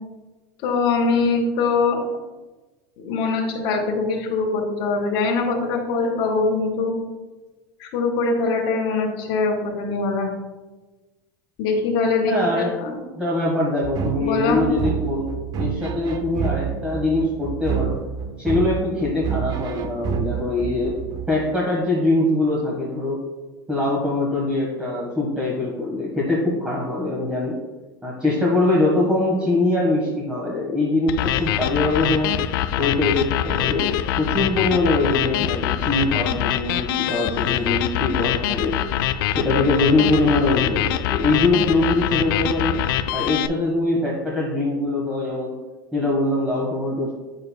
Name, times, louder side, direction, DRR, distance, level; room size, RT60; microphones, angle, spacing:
voice 1, 0.6-2.0 3.0-6.9 7.8-10.3 11.6-13.0 14.2-14.6, left 4 dB, 55° left, -1 dB, 1.9 m, -22 dB
voice 2, 12.2-12.7 13.2-18.0 18.4-21.0 21.3-23.2 23.7-27.6 28.0-32.4 32.8-38.7 39.4-42.8 43.1-45.6 45.9-47.1, left 2 dB, 10° right, -4 dB, 1.3 m, -22 dB
sound 1, 13.8-21.3, right 8 dB, 35° right, 0.4 m, -28 dB
sound 2, 31.1-43.5, left 11 dB, 75° left, 0.4 m, -24 dB
8.7 x 6.6 x 2.2 m, 1.2 s
supercardioid pair, 120°, 12 cm